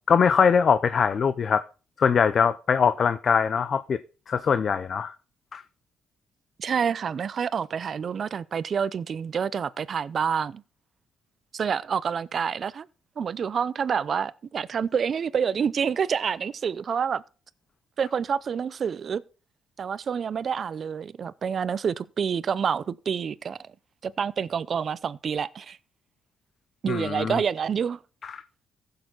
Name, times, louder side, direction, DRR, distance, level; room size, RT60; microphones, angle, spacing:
voice 1, 0.1-1.6 2.0-4.0 4.3-5.1 5.5-5.6 26.9-27.4 28.2-28.3, left 6 dB, 50° left, 0.6 m, -22 dB
voice 2, 6.6-10.6 11.5-12.9 13.2-17.2 18.0-19.2 19.8-23.6 24.0-25.8 26.8-28.0, right 7 dB, 50° right, 0.6 m, -28 dB
15.5 x 6.7 x 3.9 m
cardioid pair, 90°, 0 cm